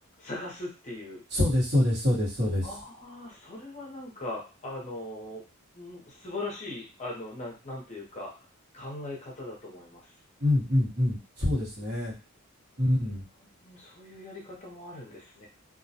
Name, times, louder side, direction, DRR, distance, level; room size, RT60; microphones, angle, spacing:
voice 1, 0.2-1.2 2.6-5.4 5.7-8.3 8.7-10.1 12.8-13.2 13.6-15.5, left 2 dB, 30° left, -2 dB, 0.6 m, -40 dB
voice 2, 1.3-2.7 10.4-12.1 12.8-13.2, left 1 dB, 50° right, -7 dB, 1.1 m, -25 dB
2.2 x 2.1 x 2.7 m, 0.33 s
head